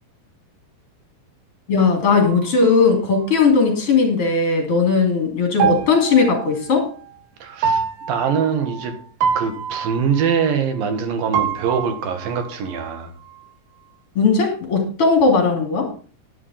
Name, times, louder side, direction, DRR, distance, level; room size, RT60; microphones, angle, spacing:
voice 1, 1.7-6.9 14.1-15.9, left 4 dB, 35° left, 3 dB, 3.3 m, -17 dB
sound 1, 2.2-3.9 5.6-7.2 7.6-11.0 11.3-13.5, right 7 dB, 80° right, 3.6 m, -27 dB
voice 2, 7.4-8.9 9.4-13.1, right 6 dB, 65° right, 7 dB, 3.0 m, -23 dB
11.0 x 11.0 x 4.3 m, 0.40 s
omnidirectional pair, 4.7 m